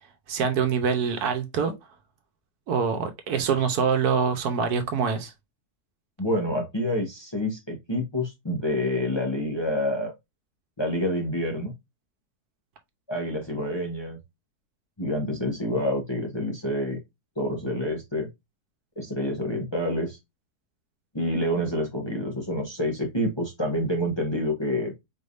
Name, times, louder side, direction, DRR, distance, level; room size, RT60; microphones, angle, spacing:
voice 1, 0.3-1.7 2.7-5.3, right 6 dB, 75° right, 1.3 m, -25 dB
voice 2, 6.2-10.1 10.8-11.7 13.1-14.2 15.0-17.0 17.4-18.3 19.0-20.2 21.1-24.9, left 1 dB, 20° left, 0.9 m, -27 dB
4.7 x 3.4 x 2.6 m
omnidirectional pair, 1.7 m